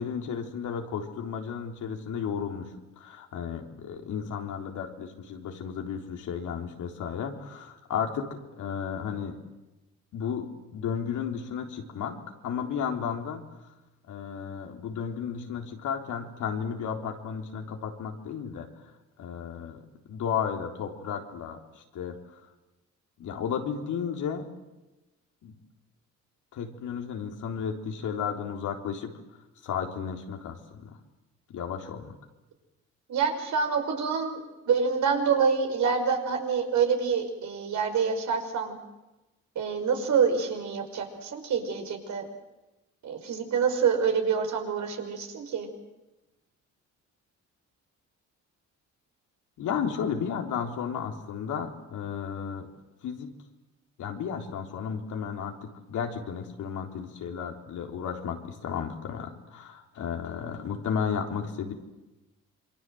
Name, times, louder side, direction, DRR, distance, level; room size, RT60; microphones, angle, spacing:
voice 1, 0.0-2.7 3.0-8.3 8.6-9.4 10.1-13.4 14.1-18.7 19.2-19.8 20.1-22.4 23.2-24.5 25.4-25.6 26.5-29.1 29.6-31.0 31.5-32.1 49.6-52.7 53.0-53.3 54.0-61.7, left 7 dB, 80° left, 3 dB, 3.8 m, -33 dB
voice 2, 33.1-38.8 39.6-42.2 43.0-45.7, right 6 dB, 70° right, 4 dB, 5.5 m, -27 dB
27.5 x 23.5 x 7.9 m, 1.0 s
cardioid pair, 90°, 30 cm